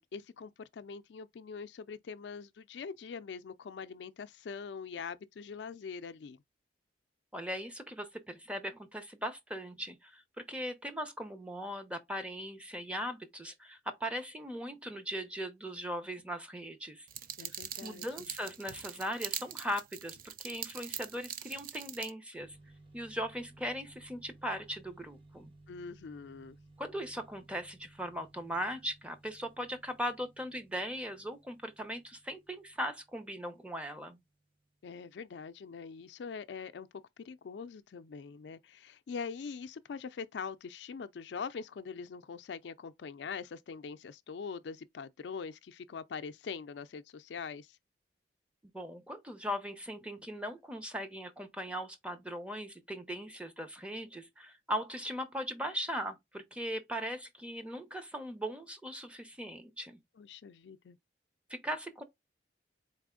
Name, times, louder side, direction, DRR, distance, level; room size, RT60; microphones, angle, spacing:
voice 1, 0.0-6.4 17.4-18.3 25.7-26.6 34.8-47.8 60.2-61.0, left 5 dB, 75° left, 0.4 m, -43 dB
voice 2, 7.3-17.1 17.8-22.6 22.9-25.5 26.8-34.2 48.7-60.0 61.5-62.0, equal, 5° right, 0.8 m, -39 dB
sound 1, 17.1-22.1, right 10 dB, 55° right, 0.5 m, -43 dB
sound 2, 22.4-34.8, right 2 dB, 30° right, 1.6 m, -60 dB
4.1 x 3.4 x 3.7 m
head